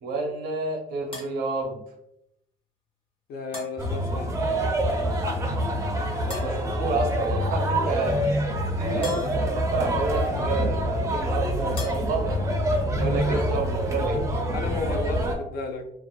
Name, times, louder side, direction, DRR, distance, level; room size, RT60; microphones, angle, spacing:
voice 1, 0.0-1.8 6.2-8.3 8.8-12.4 13.0-14.2, right 3 dB, 80° right, 1 dB, 0.7 m, -30 dB
sound 1, 1.1-1.3 3.5-3.8 6.3-6.7 9.0-9.5 11.8-12.2, left 2 dB, 30° left, 0.9 m, -37 dB
voice 2, 3.3-4.4 13.0-13.4 14.5-15.9, left 3 dB, 60° left, 4 dB, 0.5 m, -33 dB
sound 2, 3.8-15.3, equal, 20° right, 0.5 m, -26 dB
2.4 x 2.4 x 2.2 m, 0.81 s
cardioid pair, 110°, 17 cm